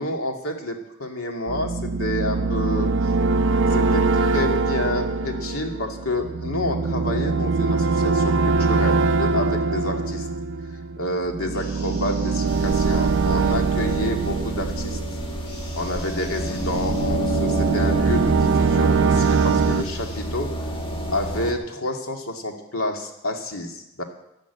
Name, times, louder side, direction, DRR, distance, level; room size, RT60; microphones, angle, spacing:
voice 1, 0.0-3.1 3.7-10.3 11.0-15.0 15.7-20.5 21.1-24.0, left 1 dB, 85° left, 3 dB, 2.4 m, -29 dB
sound 1, 1.5-15.8 16.3-19.8, right 4 dB, 60° right, 0.5 m, -22 dB
sound 2, 11.5-13.7 15.4-17.1 19.1-20.2, left 2 dB, 55° left, 6.6 m, -45 dB
sound 3, 12.4-21.5, equal, 25° left, 2.1 m, -30 dB
12.5 x 12.0 x 8.1 m, 0.87 s
head